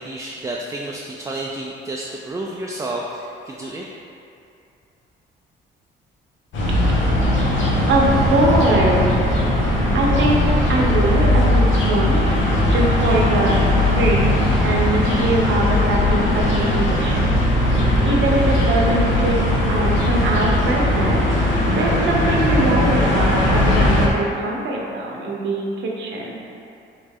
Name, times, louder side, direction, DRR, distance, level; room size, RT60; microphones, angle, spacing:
voice 1, 0.0-3.9, right 1 dB, 15° right, -2 dB, 0.3 m, -30 dB
sound 1, 6.5-24.1, left 1 dB, 75° left, 0.8 m, -18 dB
voice 2, 7.9-9.1 9.9-12.2 12.7-17.3 17.6-21.2 21.8-26.4, right 2 dB, 70° right, -1 dB, 0.7 m, -22 dB
3.9 x 3.2 x 3.5 m, 2.6 s
cardioid pair, 90°, 20 cm